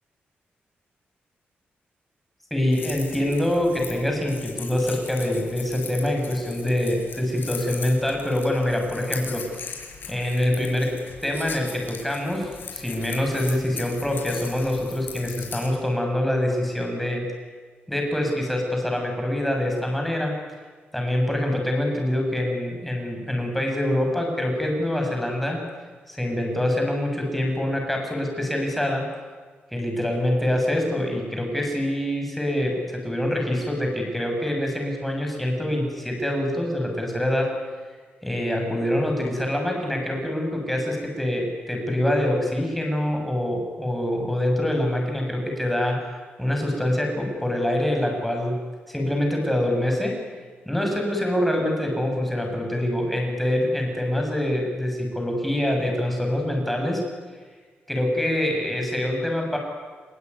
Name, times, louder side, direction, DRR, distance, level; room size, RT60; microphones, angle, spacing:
voice 1, 2.5-9.8 10.1-17.2 17.9-20.4 20.9-25.6 26.1-29.1 29.7-37.5 38.2-46.1 46.4-48.6 48.9-50.2 50.7-57.0 57.9-59.6, left 1 dB, 5° left, 1 dB, 7.1 m, -25 dB
sound 1, 2.7-15.7, left 6 dB, 65° left, 5.7 m, -39 dB
26.0 x 23.0 x 9.7 m, 1.5 s
wide cardioid pair, 145°, 4 cm